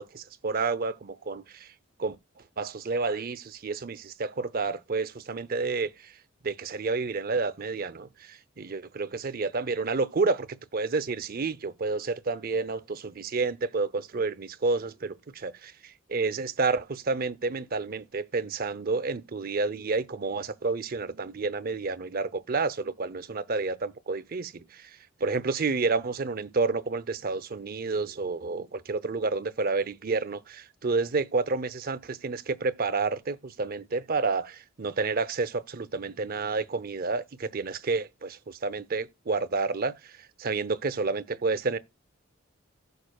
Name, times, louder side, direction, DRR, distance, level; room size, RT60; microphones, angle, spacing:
voice 1, 0.0-1.7 2.0-2.2 2.6-6.1 6.4-10.5 10.7-41.8, right 4 dB, 45° right, 0.6 m, -30 dB
16.0 x 6.7 x 2.3 m
head